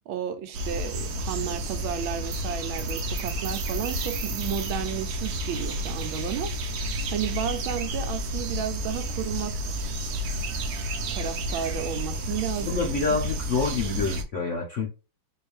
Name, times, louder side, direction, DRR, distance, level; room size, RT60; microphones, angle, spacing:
voice 1, 0.1-6.8 7.1-9.7 11.1-12.8 13.1-13.2 13.7-14.0, right 9 dB, 90° right, 1.5 m, -33 dB
sound 1, 0.5-14.2, right 1 dB, 65° right, 1.0 m, -31 dB
voice 2, 12.6-14.9, left 4 dB, 65° left, 0.7 m, -27 dB
4.3 x 2.7 x 3.2 m
omnidirectional pair, 2.2 m